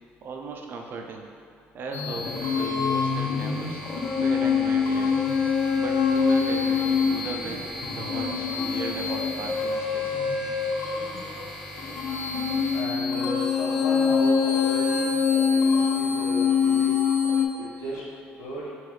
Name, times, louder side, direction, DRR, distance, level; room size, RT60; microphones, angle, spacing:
voice 1, 0.2-1.3 1.7-3.8 4.2-5.1 5.8-10.4, right 4 dB, 50° right, 2 dB, 0.5 m, -37 dB
sound 1, 1.9-17.5, left 5 dB, 50° left, 0.5 m, -25 dB
sound 2, 2.1-12.8, equal, 10° left, 0.7 m, -41 dB
voice 2, 12.7-15.1 15.6-17.0 17.5-18.0 18.4-18.7, left 1 dB, 75° left, -7 dB, 1.2 m, -35 dB
5.5 x 2.5 x 3.2 m, 2.5 s
cardioid pair, 110°, 5 cm